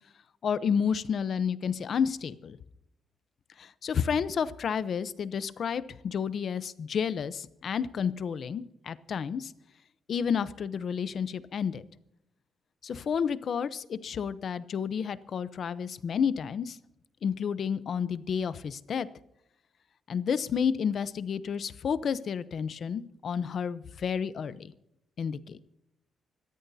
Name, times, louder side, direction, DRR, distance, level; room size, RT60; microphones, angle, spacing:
voice 1, 0.4-2.6 3.6-9.5 10.1-11.8 12.8-16.8 17.2-19.1 20.1-24.7 25.2-25.6, left 7 dB, 55° left, 15 dB, 0.7 m, -30 dB
25.5 x 13.0 x 2.8 m, 0.86 s
cardioid pair, 130°, 0 cm